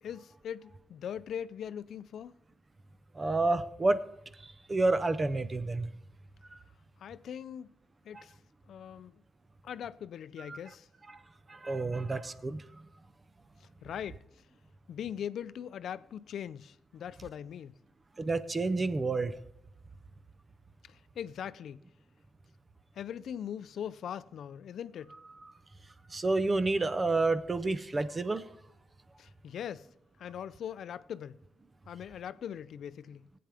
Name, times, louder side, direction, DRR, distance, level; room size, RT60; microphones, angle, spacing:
voice 1, 0.0-2.4 7.0-7.7 8.1-8.3 8.7-9.2 9.6-10.9 13.8-14.2 14.9-17.7 20.9-21.8 23.0-25.1 29.2-29.9 30.2-31.4 31.9-33.3, left 9 dB, 75° left, 0.4 m, -41 dB
voice 2, 3.2-4.0 4.4-5.9 10.5-10.6 11.1-11.2 11.5-12.6 18.2-19.3 26.1-28.4, right 3 dB, 25° right, 0.6 m, -29 dB
18.5 x 8.6 x 3.4 m
cardioid pair, 115°, 0 cm